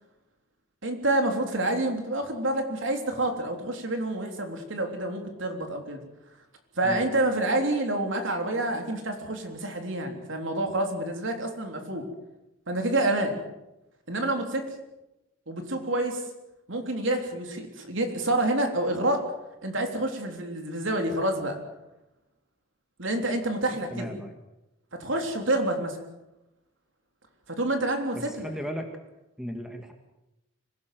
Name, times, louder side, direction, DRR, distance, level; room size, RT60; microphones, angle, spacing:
voice 1, 0.8-6.0 6.8-12.1 12.7-13.4 14.1-14.6 15.5-16.2 16.7-19.3 19.6-21.6 23.0-24.2 24.9-26.0 27.5-28.5, right 1 dB, 65° right, 4 dB, 3.6 m, -28 dB
voice 2, 23.9-24.4 28.1-28.9 29.4-29.9, equal, 5° right, 4 dB, 2.1 m, -36 dB
25.5 x 17.5 x 7.7 m, 0.94 s
head